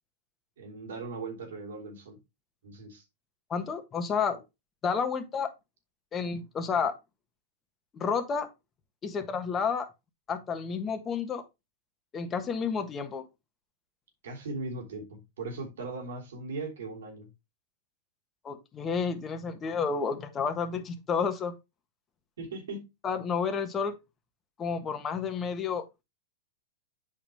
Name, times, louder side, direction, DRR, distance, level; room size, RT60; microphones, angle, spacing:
voice 1, 0.6-2.2 2.6-3.0 14.2-17.3 22.4-22.9, right 3 dB, 75° right, 3.4 m, -39 dB
voice 2, 3.5-4.4 4.8-5.5 6.1-7.0 7.9-8.5 9.0-9.9 10.3-11.4 12.1-13.2 18.4-21.5 23.0-23.9 24.6-26.0, left 6 dB, 25° left, 1.5 m, -30 dB
8.5 x 5.2 x 3.5 m
hypercardioid pair, 110°, 0 cm